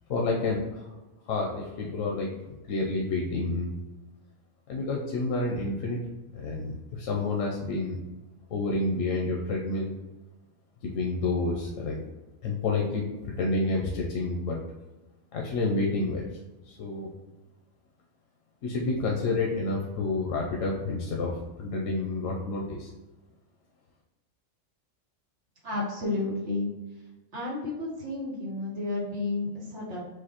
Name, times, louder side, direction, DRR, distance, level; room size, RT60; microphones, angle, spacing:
voice 1, 0.1-0.8 1.2-2.3 2.7-3.7 4.7-6.0 6.3-8.0 8.5-9.9 10.8-12.0 12.4-14.6 15.3-16.2 16.6-17.1 18.6-22.9, left 3 dB, 90° left, -1 dB, 1.1 m, -29 dB
voice 2, 25.6-26.7 27.3-30.0, left 2 dB, 60° right, -4 dB, 1.7 m, -31 dB
6.1 x 2.6 x 2.9 m, 1.1 s
omnidirectional pair, 1.3 m